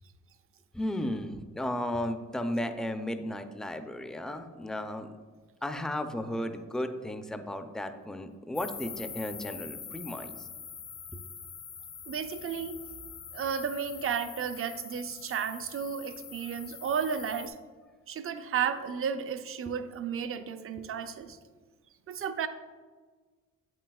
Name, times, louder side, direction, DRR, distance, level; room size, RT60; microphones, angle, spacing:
voice 1, 0.7-5.1 5.6-10.5, left 1 dB, ahead, 8 dB, 0.5 m, -34 dB
sound 1, 8.5-17.5, left 7 dB, 75° left, 1.6 m, -44 dB
voice 2, 12.1-12.8 13.3-17.5 18.1-21.4 22.1-22.5, right 7 dB, 45° right, 10 dB, 0.6 m, -33 dB
7.7 x 7.6 x 2.3 m, 1.4 s
cardioid pair, 90°, 30 cm